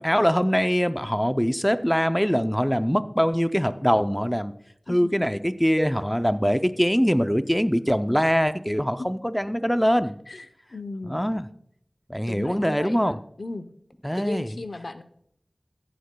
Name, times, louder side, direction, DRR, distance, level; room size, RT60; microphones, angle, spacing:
voice 1, 0.0-4.5 4.9-10.1 11.1-11.4 12.1-13.2 14.0-14.5, equal, 5° left, 11 dB, 0.4 m, -23 dB
voice 2, 10.3-11.2 12.3-13.7 14.2-15.0, left 2 dB, 75° left, 10 dB, 0.6 m, -36 dB
15.0 x 9.4 x 2.2 m, 0.72 s
wide cardioid pair, 55°, 0 cm